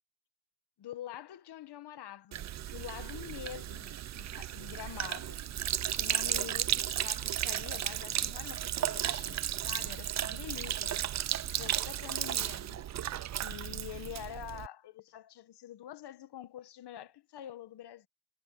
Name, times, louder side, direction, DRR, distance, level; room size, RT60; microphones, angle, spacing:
voice 1, 0.8-5.4 5.9-11.0 11.4-12.9 13.4-18.1, left 11 dB, 55° left, 1.6 m, -46 dB
Sink (filling or washing), 2.3-14.7, right 11 dB, 35° right, 0.5 m, -34 dB
cardioid pair, 130°, 47 cm